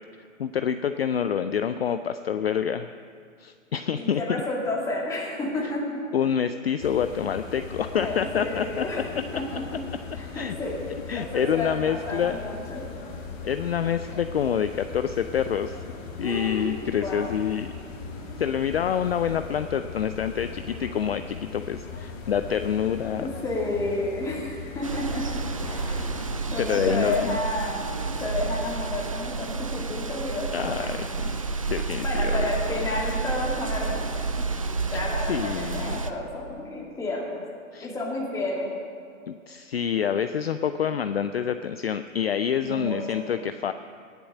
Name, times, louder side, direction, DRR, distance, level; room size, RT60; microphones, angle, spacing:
voice 1, 0.4-2.9 3.4-4.2 6.1-8.8 10.3-10.6 11.1-12.4 13.4-15.8 16.2-17.7 18.4-23.3 25.9-26.0 26.6-27.4 30.5-31.4 31.7-32.5 34.9-35.0 35.3-36.0 37.7-37.9 39.3-43.7, left 8 dB, 50° left, 10 dB, 0.5 m, -27 dB
voice 2, 3.9-5.8 7.9-9.0 9.3-9.6 10.1-10.8 11.2-12.8 16.2-17.3 23.2-25.2 25.7-26.1 26.5-30.9 32.0-34.5 34.9-37.4 37.8-38.7 42.7-43.2, left 2 dB, 10° left, -4 dB, 2.4 m, -31 dB
sound 1, 6.8-26.3, left 4 dB, 25° left, 2.1 m, -39 dB
sound 2, 24.8-36.1, right 4 dB, 25° right, 0.4 m, -30 dB
18.5 x 7.0 x 7.6 m, 2.3 s
figure-of-eight pair, 135°, 41 cm